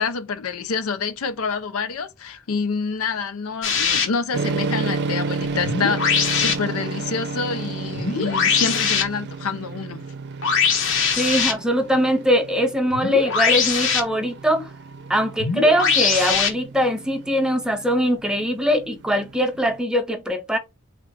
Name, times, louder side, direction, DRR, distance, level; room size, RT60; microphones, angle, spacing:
voice 1, 0.0-10.0, left 5 dB, 85° left, 0.5 m, -27 dB
sound 1, 3.6-4.0 5.4-6.5 7.9-9.0 10.4-11.5 12.9-14.0 15.4-16.5, left 6 dB, 65° left, 1.0 m, -21 dB
sound 2, 4.3-19.8, right 4 dB, 55° right, 0.5 m, -32 dB
voice 2, 11.2-14.7 15.1-20.6, equal, 5° right, 0.6 m, -21 dB
3.6 x 2.5 x 4.4 m
head